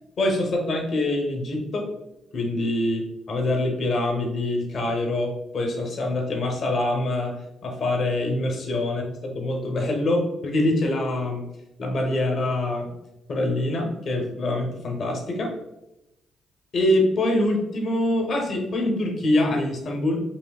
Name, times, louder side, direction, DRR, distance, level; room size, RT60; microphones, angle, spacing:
voice 1, 0.2-1.9 2.3-7.4 7.6-11.5 11.8-12.9 13.3-15.5 16.7-20.2, left 1 dB, 55° left, 1 dB, 0.8 m, -25 dB
5.3 x 2.7 x 2.3 m, 0.90 s
cardioid pair, 90°, 0 cm